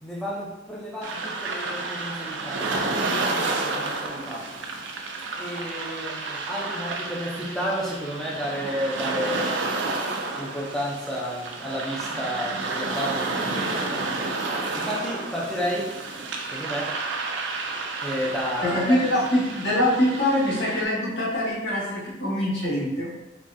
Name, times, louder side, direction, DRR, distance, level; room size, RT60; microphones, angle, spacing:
voice 1, 0.0-4.5 5.4-9.7 10.3-14.3 14.7-15.9 16.3-16.9 18.0-18.8, equal, 5° left, -5 dB, 0.4 m, -32 dB
sound 1, 1.0-20.8, right 3 dB, 85° right, 0.5 m, -30 dB
voice 2, 18.6-23.1, left 1 dB, 85° left, -9 dB, 1.5 m, -24 dB
3.6 x 3.1 x 2.6 m, 1.0 s
head